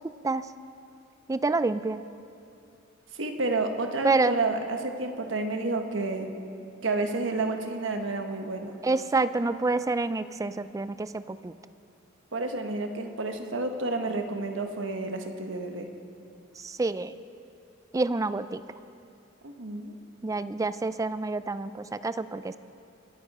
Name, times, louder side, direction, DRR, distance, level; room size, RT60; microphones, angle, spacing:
voice 1, 1.3-2.0 4.0-4.3 8.8-11.5 16.6-17.1 17.9-18.6 20.2-22.6, right 3 dB, 15° right, 14 dB, 0.3 m, -27 dB
voice 2, 3.1-6.3 6.8-8.8 12.3-15.9 19.4-19.9, right 3 dB, 70° right, 5 dB, 1.2 m, -30 dB
24.5 x 9.9 x 4.2 m, 2.5 s
head